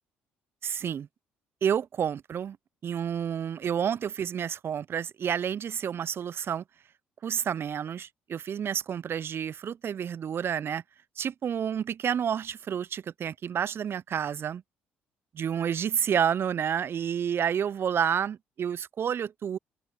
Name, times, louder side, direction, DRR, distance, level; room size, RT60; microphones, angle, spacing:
voice 1, 0.6-1.1 1.6-2.6 2.8-6.6 7.2-10.8 11.2-14.6 15.3-19.6, right 8 dB, 45° right, 0.4 m, -29 dB
open air
hypercardioid pair, 50°, 5 cm